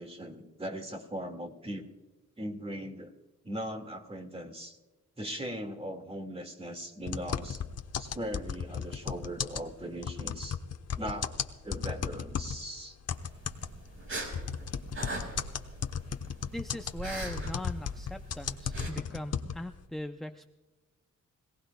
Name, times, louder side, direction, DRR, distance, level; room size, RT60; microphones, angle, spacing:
voice 1, 0.0-1.9 2.4-3.1 3.4-4.8 5.2-7.6 8.0-10.6 11.0-11.4 11.6-13.0, equal, 20° right, 5 dB, 1.9 m, -39 dB
sound 1, 7.1-12.6 13.1-19.8, left 7 dB, 55° left, 1.0 m, -35 dB
sound 2, 13.1-18.9, right 2 dB, 45° right, 4.6 m, -41 dB
voice 2, 16.5-20.5, left 1 dB, ahead, 6 dB, 0.5 m, -40 dB
25.5 x 17.5 x 2.2 m, 1.2 s
wide cardioid pair, 120°, 30 cm